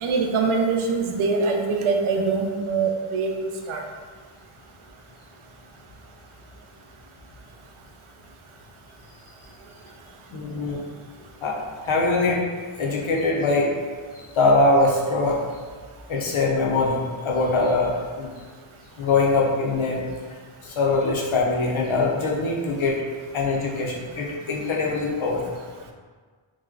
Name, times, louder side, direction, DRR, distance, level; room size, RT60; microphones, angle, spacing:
voice 1, 0.0-3.8, right 4 dB, 80° right, 2 dB, 0.5 m, -23 dB
voice 2, 10.3-10.8 11.4-11.6 11.8-12.4 12.8-13.7 14.3-15.4 16.1-18.3 19.0-20.0 20.6-23.0 23.3-25.4, left 3 dB, 75° left, -2 dB, 0.7 m, -22 dB
3.1 x 2.0 x 3.6 m, 1.5 s
wide cardioid pair, 120°, 49 cm